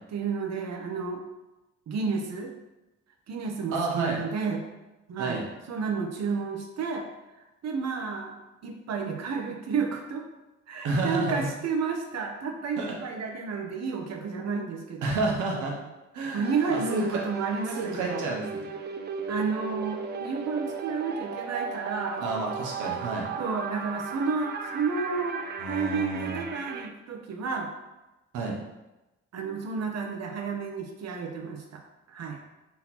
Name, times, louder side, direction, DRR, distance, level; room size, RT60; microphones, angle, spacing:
voice 1, 0.1-1.2 1.9-2.5 3.3-4.6 5.1-5.4 5.7-7.1 7.6-8.4 8.6-10.3 10.7-15.1 16.3-18.2 19.3-22.2 23.4-27.7 29.3-31.8 32.1-32.4, right 5 dB, 60° right, 2 dB, 0.8 m, -31 dB
voice 2, 3.7-4.2 5.2-5.5 10.8-11.5 12.8-12.9 15.0-15.7 16.1-17.2 17.8-18.6 22.2-23.3 25.6-26.4 28.3-28.6, right 3 dB, 85° right, -2 dB, 1.0 m, -30 dB
sound 1, 16.4-26.9, right 5 dB, 35° right, 0.4 m, -36 dB
4.0 x 2.9 x 4.1 m, 1.0 s
cardioid pair, 90°, 30 cm